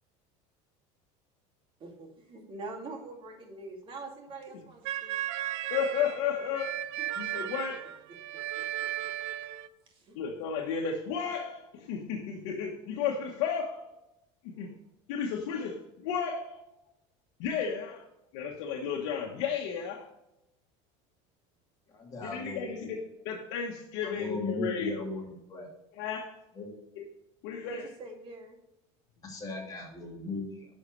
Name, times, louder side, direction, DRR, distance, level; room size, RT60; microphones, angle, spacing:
voice 1, 1.8-5.2 9.9-10.2 27.6-28.6, right 3 dB, 35° right, 1 dB, 2.5 m, -44 dB
sound 1, 4.8-9.7, right 13 dB, 75° right, 0.8 m, -35 dB
voice 2, 5.7-6.8 7.2-7.8 10.2-13.8 14.4-14.7 15.1-16.6 17.4-18.0 18.3-20.1 22.2-23.0 23.2-24.9 25.9-26.4 27.0-27.1 27.4-27.8, left 6 dB, 75° left, 0 dB, 1.3 m, -33 dB
voice 3, 21.9-22.9 24.0-25.7 26.5-26.7 29.2-30.7, left 3 dB, 25° left, -1 dB, 2.7 m, -37 dB
10.5 x 6.4 x 3.2 m, 0.89 s
cardioid pair, 140°, 15 cm